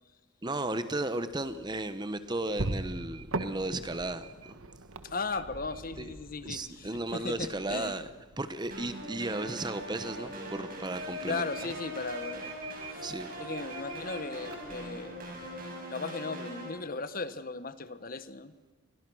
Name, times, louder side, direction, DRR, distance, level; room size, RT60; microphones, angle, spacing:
voice 1, 0.4-4.6 6.0-6.1 6.4-8.1 8.4-11.5 13.0-13.3, right 2 dB, 20° right, 12 dB, 1.0 m, -34 dB
sound 1, 1.3-15.7, right 2 dB, 80° right, 1.5 m, -43 dB
voice 2, 5.0-8.0 11.3-12.5 12.9-15.1 15.9-18.5, left 4 dB, 40° left, 13 dB, 1.1 m, -37 dB
sound 2, 8.7-16.7, equal, 40° right, 6.9 m, -41 dB
29.0 x 23.0 x 6.3 m, 1.2 s
head